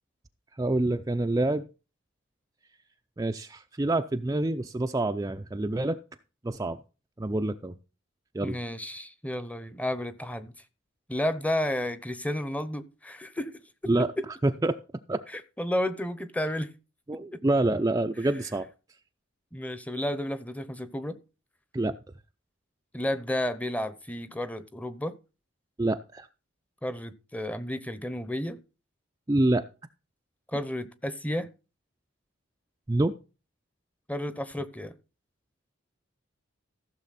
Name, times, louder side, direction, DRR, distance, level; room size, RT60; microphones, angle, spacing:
voice 1, 0.6-1.7 3.2-6.0 6.4-6.8 7.2-7.7 8.3-8.6 13.9-14.1 14.6-14.8 15.1-15.2 17.1-18.7 21.7-22.0 25.8-26.3 29.3-29.7 32.9-33.2, right 2 dB, 15° right, 0.4 m, -27 dB
voice 2, 8.4-10.5 11.1-13.5 14.2-14.3 15.3-16.7 17.3-17.4 19.5-21.2 22.9-25.1 26.8-28.6 30.5-31.5 34.1-34.9, left 1 dB, 5° left, 0.8 m, -32 dB
15.0 x 6.9 x 4.1 m
head